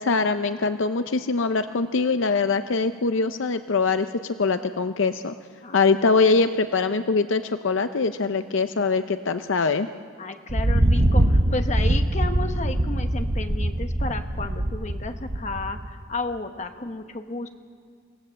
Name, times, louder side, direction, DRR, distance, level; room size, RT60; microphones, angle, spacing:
voice 1, 0.0-5.3 5.7-9.9, left 4 dB, 65° left, 10 dB, 0.6 m, -23 dB
voice 2, 10.2-17.5, left 2 dB, 35° left, 6 dB, 1.1 m, -32 dB
Thunder, 10.5-16.0, right 1 dB, 40° right, 1.0 m, -23 dB
26.5 x 17.5 x 7.6 m, 2.2 s
head